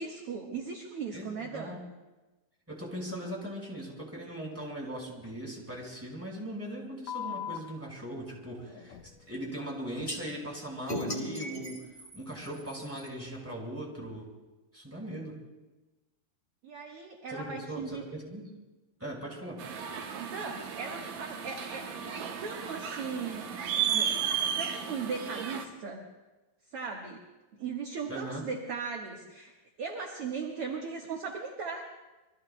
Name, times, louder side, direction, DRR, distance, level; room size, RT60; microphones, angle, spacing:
voice 1, 0.0-1.8 16.6-18.1 19.9-24.2 24.6-26.1 26.7-27.3 27.5-29.5 29.8-31.8, right 5 dB, 55° right, 0 dB, 1.9 m, -38 dB
voice 2, 1.1-1.8 2.7-9.0 9.3-11.9 12.1-14.3 14.7-15.4 17.3-18.5 19.0-19.6 28.1-28.5, right 1 dB, 5° right, -2 dB, 4.6 m, -39 dB
sound 1, 5.2-5.3 5.7-5.8 7.1-7.6 8.7-9.2 10.0-10.1, left 10 dB, 65° left, 2.0 m, -39 dB
sound 2, 10.1-10.2 10.9-13.1, left 1 dB, 15° left, 2.6 m, -37 dB
sound 3, 19.6-25.7, right 8 dB, 80° right, 2.9 m, -34 dB
28.0 x 23.5 x 2.2 m, 1.1 s
omnidirectional pair, 3.9 m